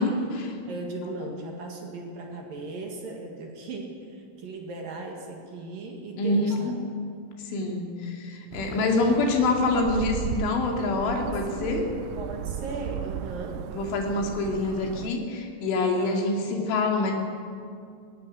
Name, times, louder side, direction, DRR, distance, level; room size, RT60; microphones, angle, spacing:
voice 1, 0.0-0.6 6.2-6.7 7.4-11.8 13.7-17.1, left 3 dB, 70° left, 1 dB, 4.8 m, -26 dB
voice 2, 0.7-6.8 11.0-11.8 12.2-13.6 15.9-16.2 16.6-16.7, right 2 dB, 55° right, 1 dB, 2.9 m, -37 dB
sound 1, 8.5-15.1, right 11 dB, 80° right, 2.8 m, -36 dB
18.0 x 16.0 x 10.0 m, 2.4 s
omnidirectional pair, 5.9 m